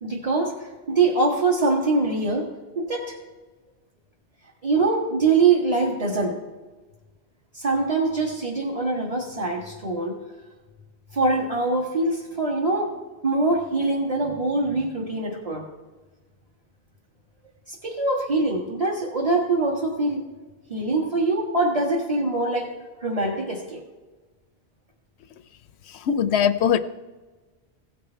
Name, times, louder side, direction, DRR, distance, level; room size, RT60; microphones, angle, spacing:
voice 1, 0.0-2.5 2.7-3.2 4.6-6.4 7.5-10.2 11.1-12.9 13.2-15.7 17.7-20.2 20.7-22.7 23.0-23.8, right 3 dB, 35° right, -3 dB, 1.5 m, -23 dB
voice 2, 25.9-26.8, left 8 dB, 75° left, 12 dB, 0.8 m, -21 dB
16.5 x 7.0 x 4.4 m, 1.3 s
omnidirectional pair, 1.1 m